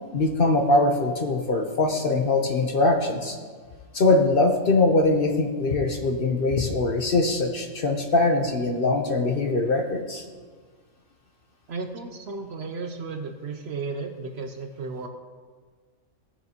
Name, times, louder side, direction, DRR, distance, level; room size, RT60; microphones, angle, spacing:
voice 1, 0.1-3.4 3.9-10.2, left 2 dB, 50° left, 3 dB, 0.9 m, -22 dB
voice 2, 11.7-15.1, right 4 dB, 60° right, 6 dB, 0.8 m, -34 dB
16.0 x 6.9 x 2.9 m, 1.5 s
omnidirectional pair, 1.4 m